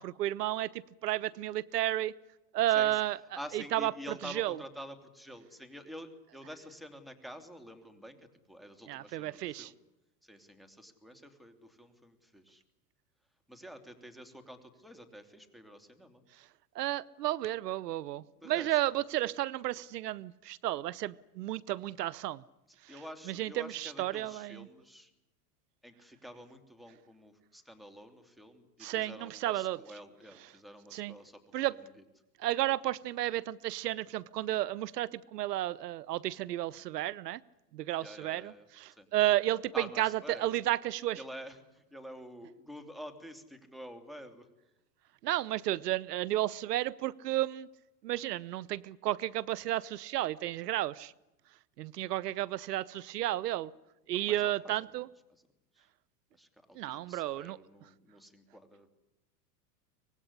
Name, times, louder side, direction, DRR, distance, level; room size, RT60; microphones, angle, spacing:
voice 1, 0.0-2.1 2.5-3.2 3.5-3.9 4.2-4.6 8.9-9.7 16.4-16.5 16.7-22.4 22.8-22.9 23.3-24.7 28.8-29.8 30.9-31.2 31.5-31.8 32.4-37.4 37.7-41.2 45.2-47.7 48.0-51.1 51.8-53.7 54.1-55.1 56.7-57.6, right 14 dB, 80° right, 22 dB, 0.9 m, -32 dB
voice 2, 2.7-3.0 3.3-8.2 8.5-9.7 10.2-12.6 13.5-16.2 18.4-18.8 22.9-25.1 25.8-31.4 38.0-39.1 39.7-40.6 41.2-44.5 54.1-54.7 55.7-55.9 56.4-58.9, equal, ahead, 5 dB, 3.0 m, -48 dB
25.0 x 19.5 x 10.0 m, 0.97 s
hypercardioid pair, 115°, 47 cm